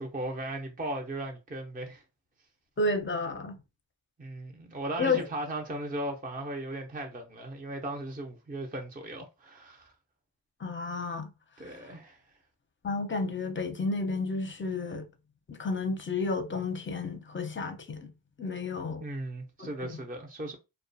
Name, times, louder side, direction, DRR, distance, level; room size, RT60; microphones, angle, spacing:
voice 1, 0.0-2.0 4.2-9.9 11.6-12.2 19.0-20.6, right 1 dB, 20° right, 0.5 m, -37 dB
voice 2, 2.8-3.6 5.0-5.3 10.6-11.3 12.8-15.1 15.5-18.0 18.4-19.0 19.6-19.9, left 3 dB, 25° left, 0.6 m, -31 dB
2.3 x 2.2 x 2.6 m
cardioid pair, 55°, 43 cm